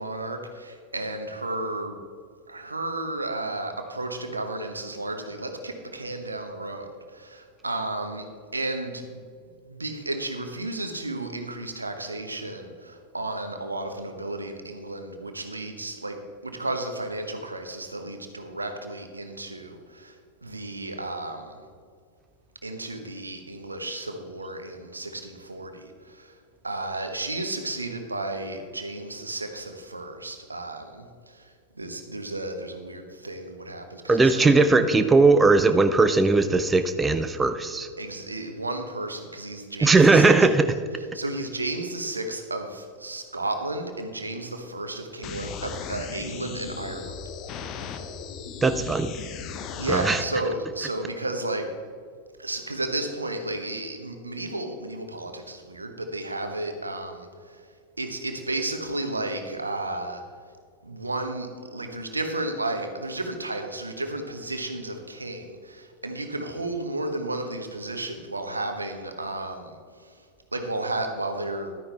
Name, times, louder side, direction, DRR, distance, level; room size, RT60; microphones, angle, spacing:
voice 1, 0.0-2.0 2.5-8.3 8.5-9.2 9.6-21.6 22.6-26.4 26.6-34.6 38.0-40.3 41.0-47.2 49.8-51.7 52.4-57.7 58.0-60.2 60.8-70.2 70.5-71.8, right 2 dB, 80° right, 6 dB, 1.0 m, -33 dB
voice 2, 34.1-37.9 39.8-40.7 48.6-49.1 49.9-50.2, right 3 dB, 15° right, 9 dB, 0.5 m, -19 dB
sound 1, 45.2-50.2, left 6 dB, 35° left, 0.8 m, -37 dB
12.0 x 9.7 x 3.4 m, 2.1 s
figure-of-eight pair, 90°, 0 cm